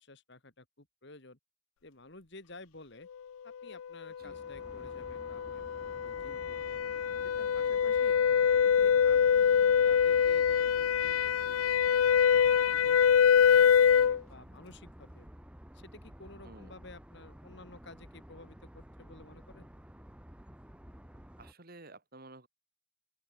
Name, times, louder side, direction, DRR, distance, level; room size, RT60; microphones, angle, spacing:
voice 1, 0.0-1.4 1.8-3.1 3.4-8.2 8.6-15.3 15.7-19.7, left 2 dB, 55° left, 2.5 m, -53 dB
sound 1, 4.2-21.5, equal, 5° right, 0.8 m, -52 dB
sound 2, 4.3-14.2, left 7 dB, 90° left, 0.4 m, -25 dB
voice 2, 21.4-22.5, right 2 dB, 45° right, 2.3 m, -52 dB
open air
head